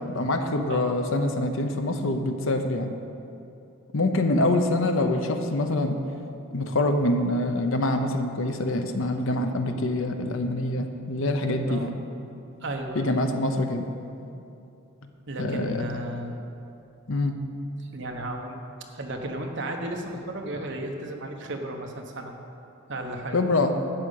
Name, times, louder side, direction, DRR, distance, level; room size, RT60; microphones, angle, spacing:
voice 1, 0.1-2.9 3.9-6.0 6.5-11.9 12.9-13.9 15.4-15.8 17.1-17.3 23.3-23.7, left 2 dB, 65° left, 6 dB, 0.8 m, -25 dB
voice 2, 12.6-13.1 15.3-16.4 17.8-18.6 18.9-22.3 22.9-23.4, right 1 dB, 55° right, 2 dB, 1.1 m, -34 dB
12.0 x 5.1 x 8.4 m, 2.8 s
head